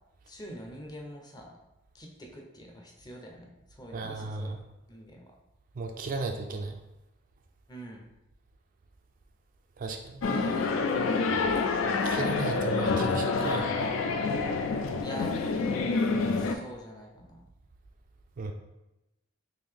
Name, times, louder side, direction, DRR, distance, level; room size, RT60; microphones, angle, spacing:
voice 1, 0.3-1.5 1.9-4.6 4.9-5.2 7.7-8.1 15.0-15.3 16.3-17.4, equal, 20° left, 0 dB, 0.5 m, -45 dB
voice 2, 3.9-4.6 5.8-6.8 9.8-10.8 12.0-13.8 18.4-18.5, right 3 dB, 45° right, 4 dB, 0.3 m, -35 dB
sound 1, 10.2-16.6, left 4 dB, 75° left, 0.3 m, -27 dB
3.8 x 2.5 x 3.3 m, 0.95 s
head